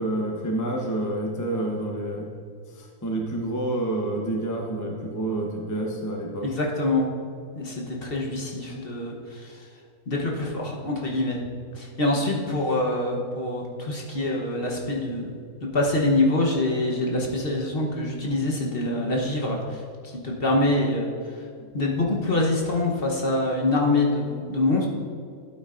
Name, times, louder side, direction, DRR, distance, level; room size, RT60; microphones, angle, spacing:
voice 1, 0.0-2.3 2.7-6.5 21.6-21.7, right 1 dB, 15° left, 0 dB, 0.7 m, -28 dB
voice 2, 6.4-7.1 7.5-9.7 10.1-15.3 15.7-21.4 21.7-24.9, left 2 dB, 45° left, -1 dB, 1.2 m, -25 dB
12.0 x 8.5 x 2.5 m, 2.3 s
omnidirectional pair, 1.6 m